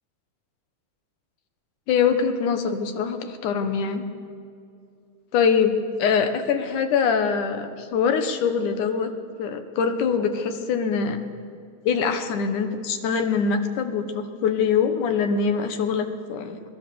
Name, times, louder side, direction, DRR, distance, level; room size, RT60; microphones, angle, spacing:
voice 1, 1.9-4.0 5.3-9.1 9.4-11.2 11.9-16.6, left 6 dB, 75° left, 7 dB, 2.7 m, -23 dB
22.5 x 21.0 x 6.9 m, 2.4 s
omnidirectional pair, 3.6 m